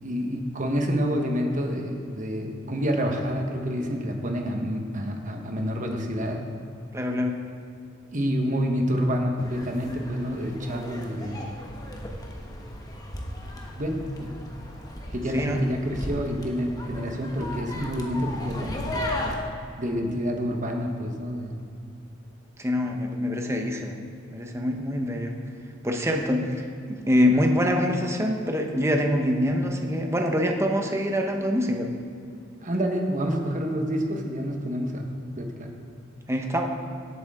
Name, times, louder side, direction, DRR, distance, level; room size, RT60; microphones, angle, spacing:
voice 1, 0.0-6.4 8.1-11.5 13.7-14.3 15.1-19.1 19.8-21.6 26.1-26.2 32.6-35.1 35.3-35.7, equal, 40° right, 3 dB, 1.3 m, -28 dB
voice 2, 6.9-7.4 15.3-15.6 22.6-24.0 24.3-25.3 25.8-26.4 26.9-31.9 36.3-36.7, equal, 15° right, 2 dB, 1.0 m, -24 dB
sound 1, 9.4-19.4, left 1 dB, 20° left, 1.2 m, -36 dB
17.0 x 8.3 x 3.7 m, 2.5 s
head